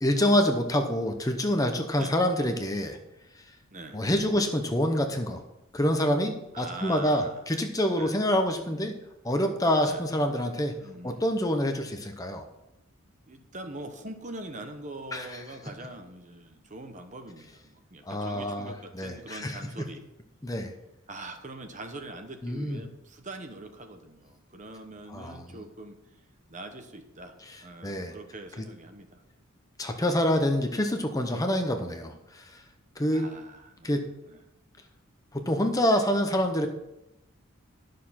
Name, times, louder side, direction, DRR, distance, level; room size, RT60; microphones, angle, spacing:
voice 1, 0.0-3.0 3.9-5.4 5.7-8.9 9.2-10.8 11.0-12.4 15.1-15.4 18.1-19.6 20.4-20.7 22.4-22.8 25.1-25.5 27.5-27.6 27.8-28.1 28.6-28.7 29.8-32.6 33.0-33.3 33.8-34.1 35.3-36.7, equal, 15° left, 5 dB, 0.8 m, -26 dB
voice 2, 3.7-4.0 6.5-7.4 7.9-8.2 9.8-10.0 10.8-11.3 13.3-20.0 21.1-26.0 26.5-27.3 27.6-29.2 29.8-30.0 33.1-34.0 34.3-34.4, right 2 dB, 35° right, 6 dB, 1.0 m, -43 dB
12.0 x 6.6 x 5.8 m, 0.90 s
head